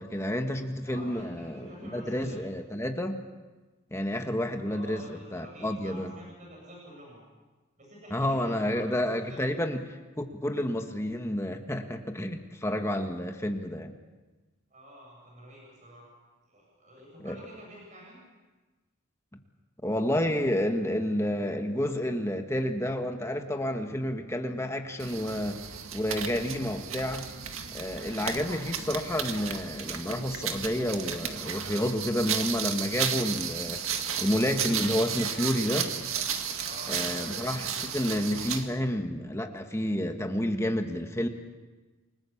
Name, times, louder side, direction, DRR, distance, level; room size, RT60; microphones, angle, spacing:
voice 1, 0.0-3.2 3.9-6.1 8.1-13.9 17.2-17.4 19.8-25.6 25.9-27.3 27.7-33.8 34.2-35.9 36.9-41.3, left 1 dB, 15° left, 5 dB, 1.6 m, -30 dB
voice 2, 0.8-2.4 4.6-7.2 7.8-9.5 14.7-16.1 16.5-18.2 36.6-37.3, right 1 dB, 35° right, -3 dB, 8.0 m, -48 dB
sound 1, 25.0-38.7, right 7 dB, 85° right, 1.9 m, -34 dB
29.0 x 20.0 x 7.3 m, 1.2 s
head